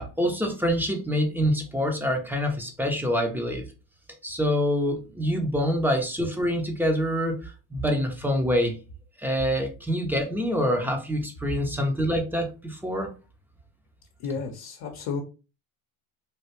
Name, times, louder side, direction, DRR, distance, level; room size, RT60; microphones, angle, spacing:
voice 1, 0.0-3.7 4.2-8.8 9.2-13.1, equal, 5° right, 0.7 m, -26 dB
voice 2, 14.2-15.2, left 5 dB, 60° left, 0.9 m, -32 dB
3.3 x 2.4 x 2.8 m
supercardioid pair, 105°, 40 cm